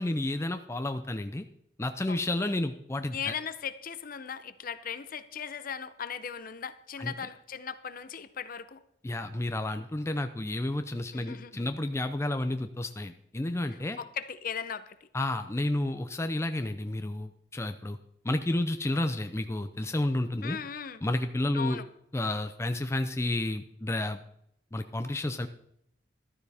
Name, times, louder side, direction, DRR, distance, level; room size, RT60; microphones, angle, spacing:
voice 1, 0.0-1.5 1.8-3.3 7.0-7.1 9.0-14.0 15.1-18.0 18.2-20.6 21.0-21.8 22.1-24.2 24.7-25.5, left 1 dB, 15° left, 8 dB, 0.5 m, -31 dB
voice 2, 2.1-2.5 3.1-8.8 11.1-11.7 13.7-15.1 20.4-21.0 21.5-21.9, left 7 dB, 50° left, 12 dB, 0.7 m, -38 dB
14.0 x 12.5 x 3.5 m, 0.75 s
head